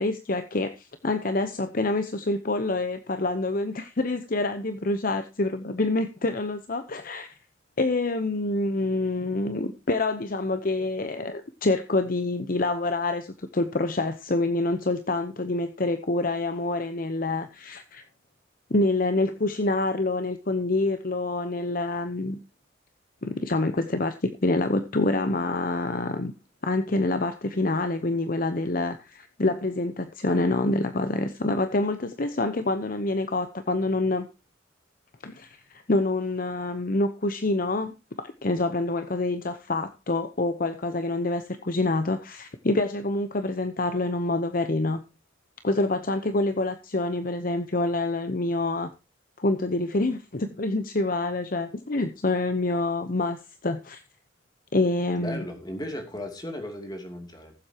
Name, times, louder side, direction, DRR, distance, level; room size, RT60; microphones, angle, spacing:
voice 1, 0.0-7.3 7.8-18.0 18.7-22.4 23.2-26.3 26.6-34.3 35.2-45.0 45.6-48.9 49.4-54.0 54.7-55.4, left 2 dB, 45° left, 9 dB, 0.8 m, -27 dB
voice 2, 55.2-57.5, left 1 dB, 20° left, 4 dB, 2.7 m, -36 dB
19.5 x 7.8 x 2.9 m, 0.28 s
head